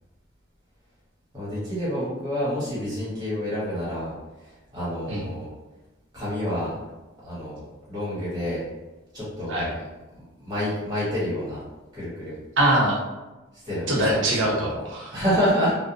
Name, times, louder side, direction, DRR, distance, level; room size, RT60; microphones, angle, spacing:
voice 1, 1.3-4.1 4.4-5.5 6.1-6.8 7.2-8.6 9.1-9.9 10.2-11.6 11.9-12.4 13.6-14.5 15.1-15.7, equal, 20° right, -9 dB, 1.1 m, -28 dB
voice 2, 12.6-13.0 13.9-15.1, right 1 dB, 65° right, -3 dB, 0.7 m, -22 dB
2.5 x 2.1 x 2.7 m, 1.1 s
head